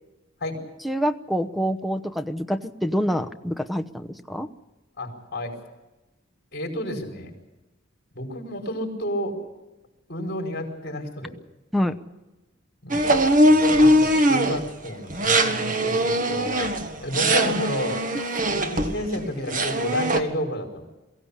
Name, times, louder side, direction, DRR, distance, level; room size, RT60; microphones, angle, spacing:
voice 1, 0.8-4.5 11.7-11.9, equal, ahead, 11 dB, 0.9 m, -26 dB
voice 2, 5.0-5.5 6.5-7.3 8.1-9.4 10.1-11.3 12.8-13.2 13.4-16.7 17.0-18.0 18.5-20.8, left 1 dB, 55° left, 3 dB, 5.0 m, -30 dB
sound 1, 12.9-14.7 15.1-19.2 19.5-20.2, equal, 45° right, 1.6 m, -21 dB
23.0 x 16.0 x 8.5 m, 1.1 s
head